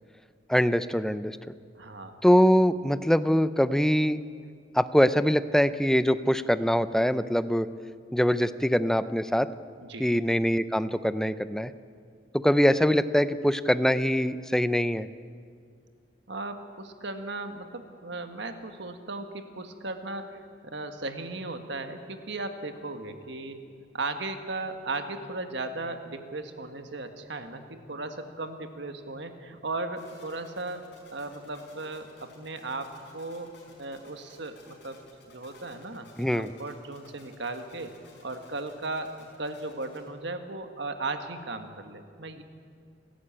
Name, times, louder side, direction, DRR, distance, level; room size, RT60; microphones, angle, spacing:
voice 1, 0.5-1.4 2.2-4.2 4.7-7.7 8.1-9.5 10.0-11.7 12.3-15.1 36.2-36.5, equal, 5° left, 13 dB, 0.5 m, -23 dB
voice 2, 1.7-2.2 9.8-10.1 16.3-23.6 23.9-27.6 27.9-33.5 33.8-37.9 38.2-42.4, right 2 dB, 60° right, 7 dB, 1.6 m, -36 dB
sound 1, 30.0-40.1, left 2 dB, 60° left, 5.4 m, -55 dB
30.0 x 11.5 x 8.8 m, 2.2 s
head